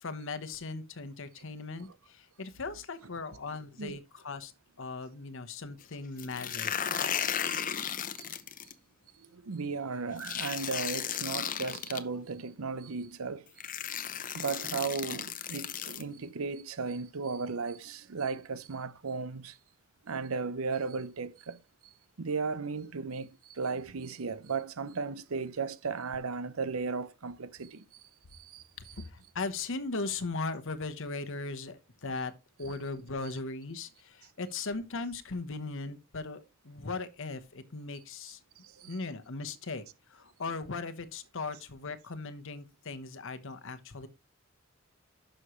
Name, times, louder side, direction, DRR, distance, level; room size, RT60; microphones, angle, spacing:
voice 1, 0.0-4.5 4.8-6.7 28.8-32.3 32.6-38.4 38.9-44.1, left 3 dB, 65° left, 1.0 m, -38 dB
sound 1, 6.2-8.7 10.2-12.0 13.0-13.1 13.6-16.0, left 8 dB, 40° left, 0.7 m, -35 dB
voice 2, 6.9-8.3 9.2-13.5 14.3-19.6 20.0-21.6 22.2-28.0 28.3-28.9 32.6-32.7 38.6-39.0, right 4 dB, 85° right, 0.7 m, -36 dB
11.0 x 6.4 x 3.1 m
head